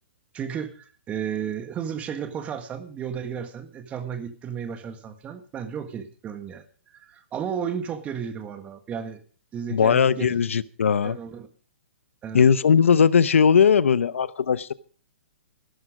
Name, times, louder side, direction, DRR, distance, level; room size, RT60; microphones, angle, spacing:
voice 1, 0.3-6.6 6.9-9.2 9.5-10.5 11.0-11.5 12.2-12.4, right 8 dB, 20° right, 1.8 m, -33 dB
voice 2, 9.7-11.2 12.3-14.7, left 6 dB, 85° left, 0.9 m, -19 dB
15.5 x 13.0 x 5.0 m
hypercardioid pair, 145°, 7 cm